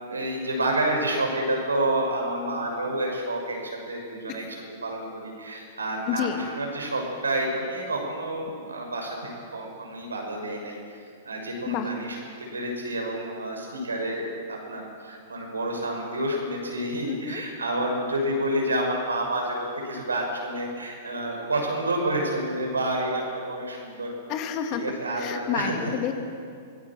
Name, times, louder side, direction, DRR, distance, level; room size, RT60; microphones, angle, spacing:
voice 1, 0.0-4.4 4.8-11.0 11.2-24.1 24.7-25.9, right 1 dB, 85° right, 1 dB, 6.3 m, -29 dB
voice 2, 6.1-6.5 11.7-11.9 17.1-17.4 24.3-24.9 25.1-26.1, left 9 dB, 40° left, 5 dB, 2.5 m, -29 dB
24.5 x 19.5 x 7.5 m, 2.3 s
figure-of-eight pair, 105°, 0 cm